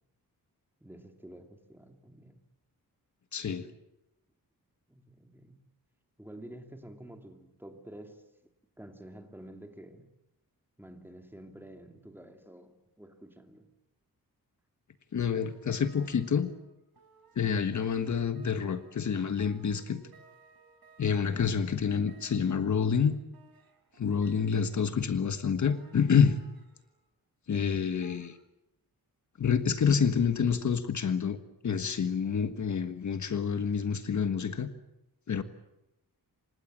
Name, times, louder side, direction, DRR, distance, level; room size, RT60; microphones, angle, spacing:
voice 1, 0.8-2.4 4.9-5.7 6.2-8.2 8.8-10.1 10.8-13.7, right 1 dB, 5° right, 2.7 m, -49 dB
voice 2, 3.3-3.7 15.1-16.5 17.3-20.0 21.0-23.1 24.0-26.4 27.5-28.4 29.4-31.4 31.6-34.7 35.3-35.4, left 6 dB, 55° left, 1.5 m, -28 dB
sound 1, 15.1-25.1 25.6-27.0 28.0-28.3, right 4 dB, 90° right, 4.9 m, -61 dB
28.5 x 25.5 x 7.6 m
wide cardioid pair, 145°, 35 cm